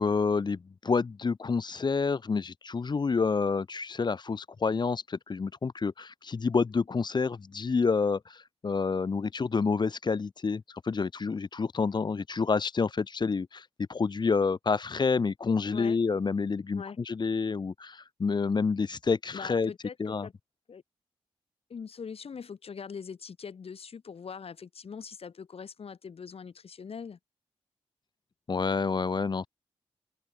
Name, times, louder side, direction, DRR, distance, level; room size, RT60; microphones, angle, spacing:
voice 1, 0.0-19.7 20.0-20.3 28.5-29.5, left 4 dB, 40° left, 0.9 m, -28 dB
voice 2, 19.3-20.3 20.7-20.8 21.7-27.2, left 6 dB, 60° left, 3.4 m, -42 dB
open air
supercardioid pair, 50°, 11 cm